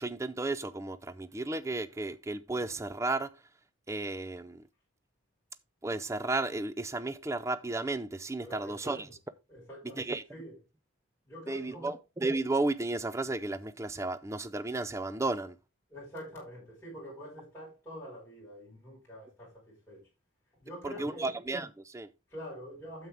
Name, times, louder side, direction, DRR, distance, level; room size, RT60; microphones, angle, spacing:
voice 1, 0.0-3.3 3.9-4.6 5.8-9.1 9.9-10.2 11.5-15.6 20.8-22.1, right 2 dB, 15° right, 0.4 m, -33 dB
voice 2, 8.4-9.0 9.5-10.6 11.3-12.0 15.9-20.1 20.6-21.3 22.3-23.1, equal, 10° left, 5.3 m, -46 dB
9.1 x 7.3 x 3.5 m
head